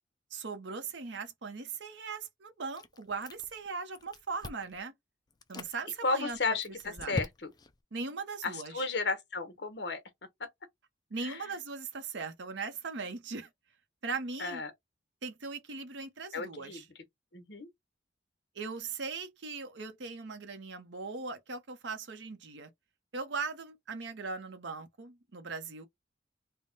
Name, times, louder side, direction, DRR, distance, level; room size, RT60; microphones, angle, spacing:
voice 1, 0.3-4.9 5.5-6.6 6.9-7.2 7.9-8.8 11.1-13.5 14.0-14.6 15.2-16.8 18.5-22.7 23.1-25.9, right 4 dB, 70° right, 0.8 m, -39 dB
Chewing mastication, 2.7-3.7 3.9-4.8 5.3-5.7 6.3-7.7, left 2 dB, 20° left, 0.4 m, -41 dB
voice 2, 6.0-7.5 8.4-10.0 10.4-10.5 11.2-11.5 14.4-14.7 16.3-16.8 17.3-17.7, left 3 dB, 60° left, 1.0 m, -33 dB
3.4 x 2.2 x 3.9 m
head